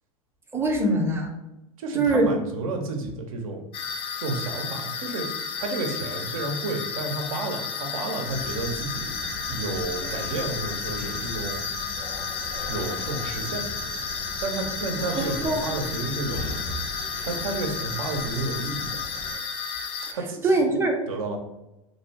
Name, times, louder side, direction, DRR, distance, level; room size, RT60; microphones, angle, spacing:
voice 1, 0.5-1.3 1.9-2.3 15.2-15.6 20.0-20.2 20.4-20.9, right 2 dB, 15° right, 2 dB, 0.5 m, -23 dB
voice 2, 1.8-3.6 4.2-5.3 5.6-9.1 9.5-11.6 12.7-13.7 14.4-16.4 17.2-19.0 20.1-20.5 21.1-21.4, right 3 dB, 70° right, 3 dB, 0.6 m, -31 dB
sound 1, 3.7-20.1, left 6 dB, 35° left, 0.4 m, -33 dB
sound 2, 8.2-19.4, left 1 dB, 75° left, 0.7 m, -37 dB
2.7 x 2.1 x 2.7 m, 0.94 s
hypercardioid pair, 90°, 18 cm